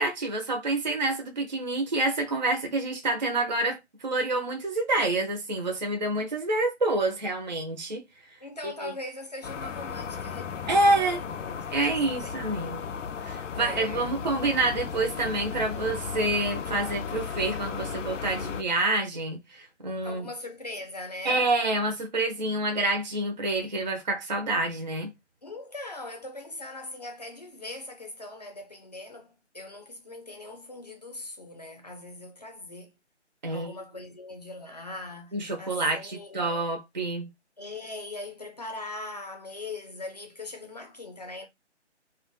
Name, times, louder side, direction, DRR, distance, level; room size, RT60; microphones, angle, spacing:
voice 1, 0.0-8.0 8.8-8.9 10.7-11.2 11.7-12.8 13.2-20.3 21.2-25.1 33.4-33.7 35.3-37.3, right 2 dB, 40° right, 0.4 m, -27 dB
voice 2, 8.4-12.9 13.6-14.2 20.0-21.5 25.4-32.9 33.5-36.5 37.6-41.5, left 2 dB, 35° left, 0.5 m, -41 dB
sound 1, 9.4-18.6, left 6 dB, 85° left, 0.5 m, -35 dB
2.2 x 2.1 x 3.0 m
figure-of-eight pair, 165°, 36 cm